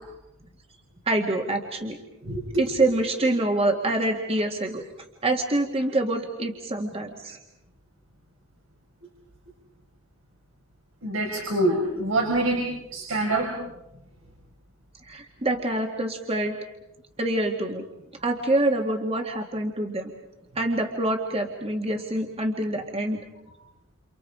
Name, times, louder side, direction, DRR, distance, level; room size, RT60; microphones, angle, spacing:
voice 1, 1.1-2.0 2.6-4.8 5.2-7.4 15.0-16.6 17.2-17.8 18.2-20.1 20.6-23.2, right 1 dB, 30° right, 3 dB, 2.0 m, -26 dB
voice 2, 11.0-13.5, right 2 dB, 75° right, -1 dB, 5.2 m, -25 dB
29.5 x 29.0 x 5.0 m, 0.89 s
head